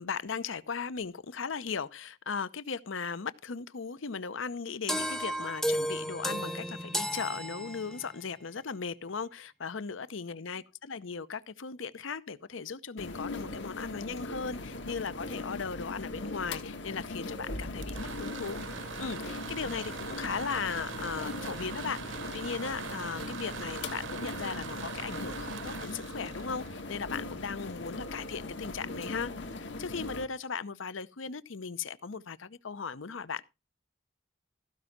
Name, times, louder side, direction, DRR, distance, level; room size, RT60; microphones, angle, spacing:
voice 1, 0.0-33.4, left 5 dB, 85° left, 0.7 m, -37 dB
sound 1, 4.9-8.2, equal, ahead, 0.6 m, -33 dB
sound 2, 13.0-30.2, left 2 dB, 70° left, 1.6 m, -40 dB
sound 3, 17.6-27.4, right 6 dB, 80° right, 0.8 m, -42 dB
15.0 x 5.4 x 5.9 m
head